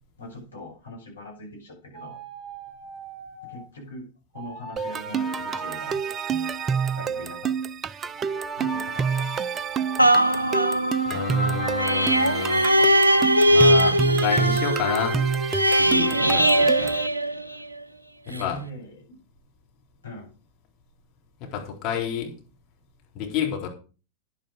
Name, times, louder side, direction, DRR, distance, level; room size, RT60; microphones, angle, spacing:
voice 1, 0.2-2.2 3.5-4.0 4.3-6.0 6.8-7.5 8.6-9.3 16.1-16.9 18.3-19.2 20.0-20.3, left 1 dB, 75° left, -2 dB, 6.8 m, -41 dB
sound 1, 1.9-3.7 4.3-7.2 8.2-10.8, right 2 dB, ahead, 5.0 m, -40 dB
sound 2, 4.8-17.1, right 6 dB, 25° right, 0.5 m, -28 dB
sound 3, 10.0-17.8 18.3-18.4, right 1 dB, 85° right, 0.6 m, -21 dB
voice 2, 11.1-12.7 13.5-15.2 15.7-16.9 18.4-18.6 21.5-22.3 23.1-23.7, left 8 dB, 40° left, 1 dB, 4.0 m, -29 dB
10.5 x 10.5 x 5.0 m, 0.36 s
figure-of-eight pair, 90°, 0 cm